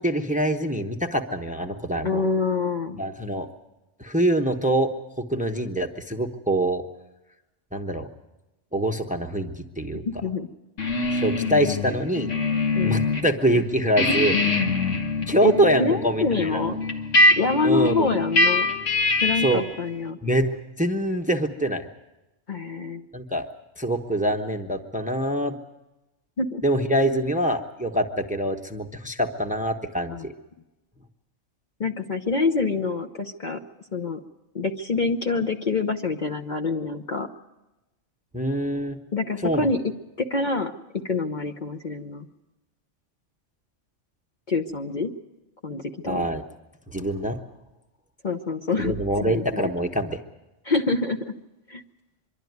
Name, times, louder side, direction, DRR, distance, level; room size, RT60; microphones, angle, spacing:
voice 1, 0.0-2.2 3.0-3.5 4.0-4.9 5.2-6.9 7.7-8.1 8.7-10.0 11.1-12.3 12.8-14.3 15.3-16.6 17.6-18.1 19.4-19.6 20.2-21.8 23.1-23.5 23.8-25.5 26.6-30.3 38.3-39.0 39.4-39.7 46.0-46.4 46.9-47.4 48.8-50.2, right 1 dB, 5° right, 5 dB, 0.9 m, -24 dB
voice 2, 2.0-3.0 10.1-10.5 12.7-13.0 15.4-15.5 15.8-16.8 17.4-18.7 19.2-20.2 22.5-23.0 26.4-26.6 30.1-30.3 31.8-33.6 33.9-34.2 34.5-37.3 39.1-39.8 40.2-40.7 41.0-42.3 44.5-45.1 45.6-46.3 48.2-49.4 50.6-51.2 51.7-51.8, left 4 dB, 45° left, 4 dB, 0.9 m, -26 dB
sound 1, 10.8-13.3 13.6-19.7, left 2 dB, 90° left, 1.8 m, -24 dB
24.5 x 12.0 x 9.4 m, 1.0 s
omnidirectional pair, 1.2 m